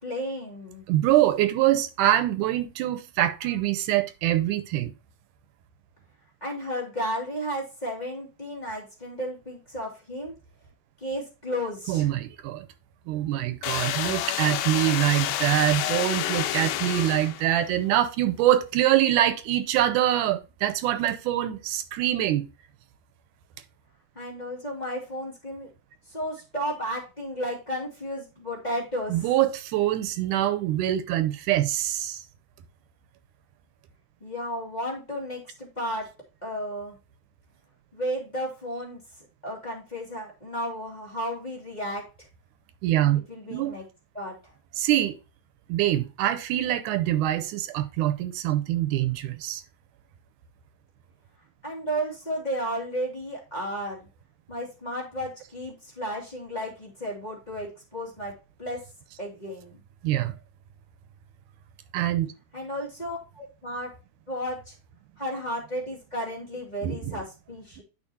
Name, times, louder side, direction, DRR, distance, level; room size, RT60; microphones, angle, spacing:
voice 1, 0.0-0.8 6.4-10.3 11.0-12.1 24.1-25.7 26.1-29.3 34.2-36.1 36.4-37.0 37.9-39.0 39.4-42.3 43.1-43.8 44.1-44.5 51.6-54.1 54.5-58.8 59.2-59.8 62.5-63.9 64.3-64.7 65.2-67.8, equal, 15° left, 2.2 m, -33 dB
voice 2, 0.9-4.9 11.9-12.7 13.1-22.5 29.1-32.2 42.8-43.2 43.5-43.8 44.8-45.2 45.7-49.6 60.0-60.3 61.9-62.3 66.8-67.2, right 13 dB, 90° right, 2.2 m, -24 dB
sound 1, 13.6-17.7, left 12 dB, 80° left, 2.0 m, -29 dB
11.0 x 5.0 x 2.8 m
omnidirectional pair, 3.6 m